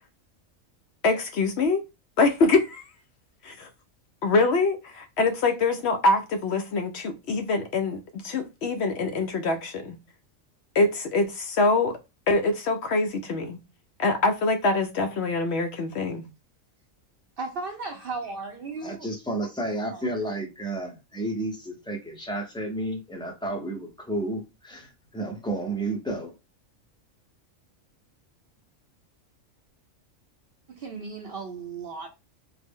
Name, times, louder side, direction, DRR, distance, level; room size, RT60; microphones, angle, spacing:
voice 1, 1.0-1.8 2.2-2.9 3.4-3.7 4.2-10.0 10.7-12.0 12.3-13.6 14.0-16.3, left 3 dB, 65° left, 0.7 m, -24 dB
voice 2, 17.4-19.1 19.9-20.0 30.7-32.1, right 4 dB, 60° right, 0.6 m, -35 dB
voice 3, 18.8-26.3, right 1 dB, 5° left, 0.4 m, -31 dB
3.8 x 2.0 x 3.5 m
omnidirectional pair, 1.4 m